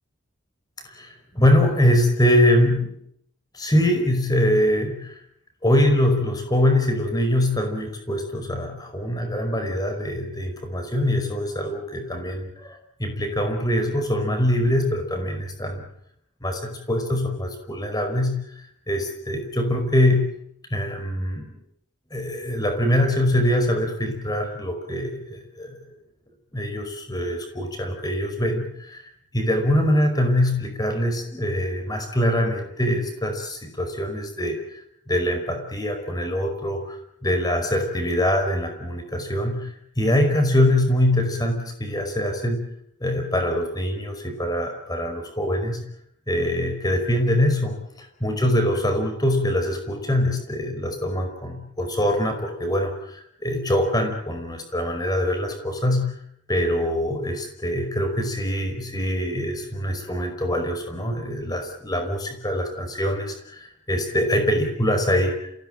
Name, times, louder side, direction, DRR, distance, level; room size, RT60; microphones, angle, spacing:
voice 1, 0.9-2.9 3.5-5.2 5.6-15.8 16.4-18.4 18.9-20.3 20.7-21.5 22.1-25.8 26.5-29.0 29.3-34.8 35.1-37.0 37.2-39.7 40.0-42.6 43.0-45.8 46.3-47.8 48.2-56.1 56.5-63.6 63.9-65.5, left 1 dB, 20° left, 5 dB, 5.1 m, -23 dB
28.5 x 16.5 x 9.0 m, 0.72 s
head